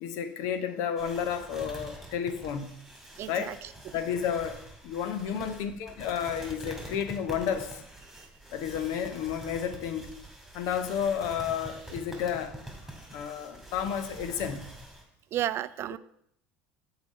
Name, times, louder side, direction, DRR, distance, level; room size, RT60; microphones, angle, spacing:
voice 1, 0.0-2.7 3.3-3.5 3.9-4.6 4.8-7.8 8.5-10.1 10.5-12.5 13.1-14.6, left 8 dB, 70° left, 9 dB, 0.8 m, -31 dB
sound 1, 1.0-15.0, right 1 dB, ahead, 2.4 m, -46 dB
voice 2, 3.2-3.7 5.3-5.6 8.1-8.2 15.3-16.0, right 12 dB, 50° right, 15 dB, 0.4 m, -33 dB
6.8 x 4.1 x 5.4 m, 0.71 s
hypercardioid pair, 75°, 5 cm